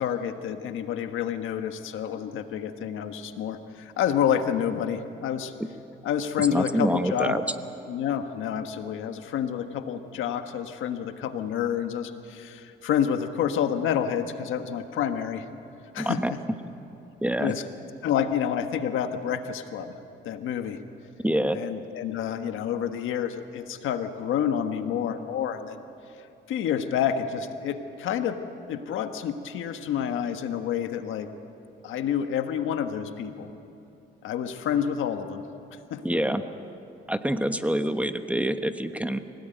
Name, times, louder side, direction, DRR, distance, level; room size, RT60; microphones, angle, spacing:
voice 1, 0.0-5.5 6.0-7.4 7.9-15.4 15.9-16.2 17.4-17.6 18.0-19.9 20.2-20.8 21.5-25.8 26.5-28.4 28.7-31.3 31.8-33.5 34.2-35.4 35.9-36.0, left 9 dB, 85° left, 7 dB, 1.5 m, -28 dB
voice 2, 6.4-7.4 16.0-16.3 17.2-17.5 21.2-21.6 36.0-36.4 37.1-39.2, right 1 dB, 5° right, 8 dB, 1.2 m, -26 dB
25.0 x 18.0 x 9.3 m, 2.9 s
cardioid pair, 90°, 20 cm